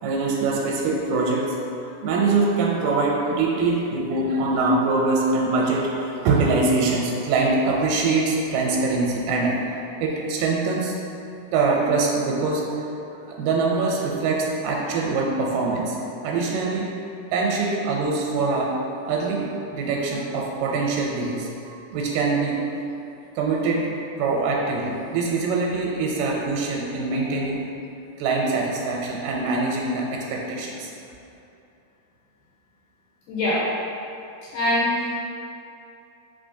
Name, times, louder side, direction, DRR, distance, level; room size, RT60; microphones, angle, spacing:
voice 1, 0.0-1.6 1.8-11.0 11.5-12.6 13.2-16.9 17.3-18.7 19.1-22.6 23.4-23.9 24.2-27.6 28.2-30.9, right 3 dB, 90° right, -2 dB, 2.2 m, -23 dB
voice 2, 33.3-33.6 34.5-35.1, left 1 dB, 80° left, -9 dB, 2.3 m, -22 dB
4.8 x 3.7 x 2.6 m, 2.7 s
omnidirectional pair, 3.8 m